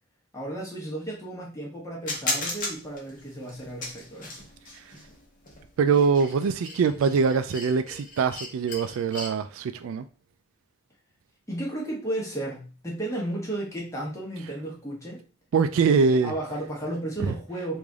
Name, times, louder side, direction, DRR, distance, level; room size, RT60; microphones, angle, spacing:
voice 1, 0.3-4.3 11.5-15.2 16.1-17.8, right 1 dB, 15° left, -3 dB, 1.1 m, -33 dB
sound 1, 2.1-9.3, left 2 dB, 40° left, 0.9 m, -36 dB
voice 2, 5.8-10.0 15.5-16.3, right 5 dB, 70° right, 10 dB, 0.3 m, -23 dB
3.3 x 2.6 x 3.5 m, 0.36 s
head